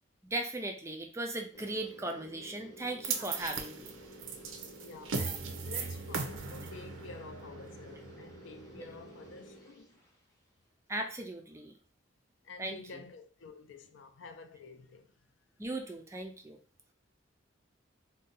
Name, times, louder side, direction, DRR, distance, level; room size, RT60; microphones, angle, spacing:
voice 1, 0.2-3.9 8.7-8.9 10.9-11.7 12.6-12.8 15.6-16.6, right 2 dB, 15° right, 0.3 m, -38 dB
sound 1, 1.5-10.3, right 1 dB, 15° left, 0.8 m, -52 dB
sound 2, 3.0-9.3, right 5 dB, 85° right, 0.5 m, -39 dB
voice 2, 4.8-9.9 12.4-15.1, left 4 dB, 70° left, 0.4 m, -50 dB
2.6 x 2.1 x 3.8 m
head